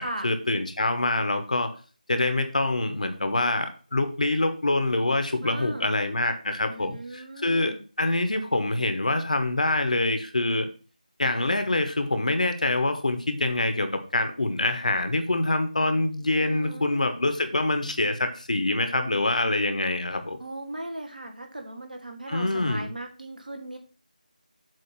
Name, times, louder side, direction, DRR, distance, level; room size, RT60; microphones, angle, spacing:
voice 1, 0.0-1.7 2.1-10.7 11.2-20.4 22.3-22.9, left 2 dB, 55° left, 8 dB, 1.0 m, -25 dB
voice 2, 5.4-5.9 6.7-7.8 16.4-17.0 20.4-23.8, right 1 dB, 70° right, 3 dB, 1.6 m, -38 dB
7.6 x 2.8 x 5.7 m, 0.36 s
figure-of-eight pair, 165°, 5 cm